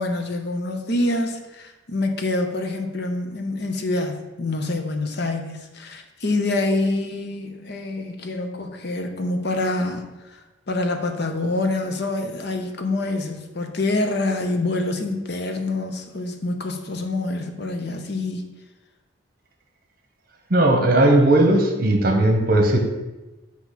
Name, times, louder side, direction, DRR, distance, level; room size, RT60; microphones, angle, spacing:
voice 1, 0.0-10.4 10.7-18.5, left 2 dB, 55° left, 5 dB, 0.7 m, -26 dB
voice 2, 20.5-22.8, right 1 dB, 50° right, 3 dB, 1.0 m, -17 dB
8.0 x 3.0 x 5.8 m, 1.1 s
head